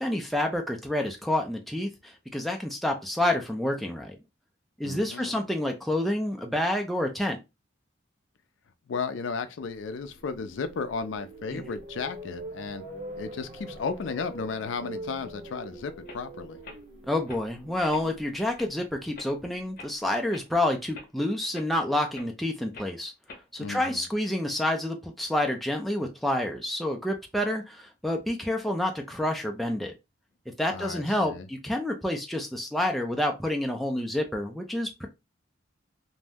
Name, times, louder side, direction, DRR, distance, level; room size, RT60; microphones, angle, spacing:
voice 1, 0.0-4.2 4.8-7.4 11.5-11.6 17.1-23.1 23.5-29.9 30.6-35.1, left 1 dB, ahead, 0.3 m, -28 dB
voice 2, 4.8-5.4 8.9-12.8 13.2-16.6 23.6-24.1 30.7-31.5, left 5 dB, 80° left, 0.4 m, -34 dB
sound 1, 9.8-19.9, right 1 dB, 35° right, 0.7 m, -44 dB
sound 2, 16.0-16.2 16.6-16.8 17.3-17.4 17.9-18.1 18.5-18.7 19.1-19.4 19.8-19.9 20.3-20.5 20.9-21.1 21.5-21.7 22.1-22.3 22.7-22.9 23.3-23.5, left 3 dB, 45° left, 0.7 m, -45 dB
2.6 x 2.0 x 3.4 m
head